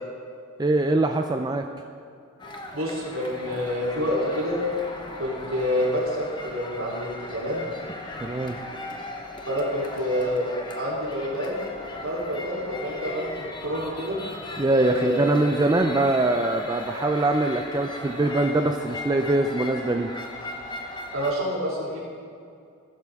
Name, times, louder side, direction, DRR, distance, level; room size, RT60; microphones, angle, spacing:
voice 1, 0.6-1.7 8.2-8.6 14.6-20.1, right 2 dB, 20° right, 5 dB, 0.4 m, -23 dB
sound 1, 2.4-21.3, left 2 dB, 20° left, 0.9 m, -38 dB
voice 2, 2.7-4.6 5.2-7.7 9.5-11.6 12.0-14.2 14.7-15.2 21.1-22.0, equal, 65° right, -5 dB, 3.3 m, -28 dB
15.5 x 12.0 x 3.5 m, 2.4 s
head